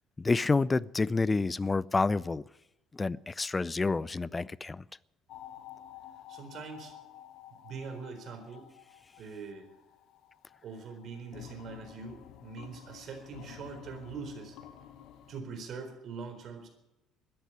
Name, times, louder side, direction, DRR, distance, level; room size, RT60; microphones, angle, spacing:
voice 1, 0.2-2.4 2.9-4.8, left 3 dB, 25° left, 0.5 m, -28 dB
sound 1, 5.3-15.4, left 10 dB, 65° left, 1.1 m, -51 dB
voice 2, 6.3-6.9 7.6-8.7 9.2-9.7 10.6-14.6 15.3-16.7, right 5 dB, 55° right, 4.1 m, -43 dB
13.5 x 10.5 x 9.7 m
hypercardioid pair, 65°, 0 cm